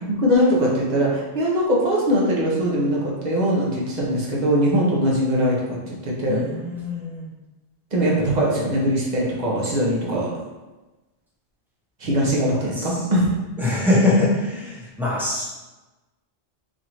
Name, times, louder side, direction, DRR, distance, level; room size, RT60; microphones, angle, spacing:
voice 1, 0.0-6.4 7.9-10.3 12.0-13.3, equal, 40° right, -4 dB, 1.0 m, -21 dB
voice 2, 6.3-7.3 12.5-13.0 13.6-15.5, left 2 dB, ahead, -7 dB, 0.9 m, -23 dB
4.1 x 2.7 x 3.1 m, 1.1 s
omnidirectional pair, 1.1 m